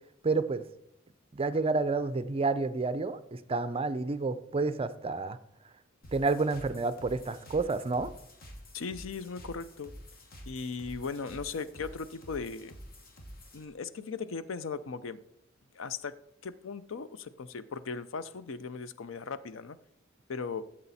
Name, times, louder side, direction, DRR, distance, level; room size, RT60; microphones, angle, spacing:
voice 1, 0.2-0.6 1.3-3.2 3.5-5.4 6.1-8.1, right 3 dB, 30° right, 14 dB, 0.5 m, -29 dB
sound 1, 6.0-13.6, equal, 50° left, 1.6 m, -49 dB
voice 2, 8.7-9.9 10.5-12.7 13.5-15.2 15.7-16.1 16.4-19.8 20.3-20.6, left 5 dB, 75° left, 14 dB, 0.6 m, -38 dB
12.0 x 7.7 x 4.2 m, 0.80 s
head